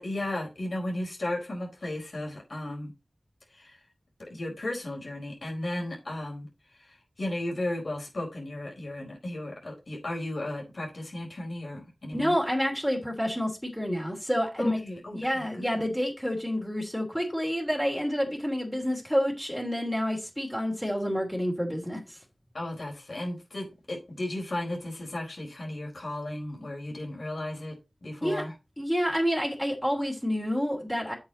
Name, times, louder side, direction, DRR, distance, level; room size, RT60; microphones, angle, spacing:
voice 1, 0.0-2.9 3.5-3.8 4.2-12.3 14.6-15.8 22.5-28.5, left 1 dB, 70° left, 4.5 m, -35 dB
voice 2, 12.1-14.8 15.1-22.2 28.2-28.4 28.8-31.1, equal, 5° left, 3.0 m, -28 dB
8.5 x 6.8 x 4.1 m
wide cardioid pair, 50°, 0 cm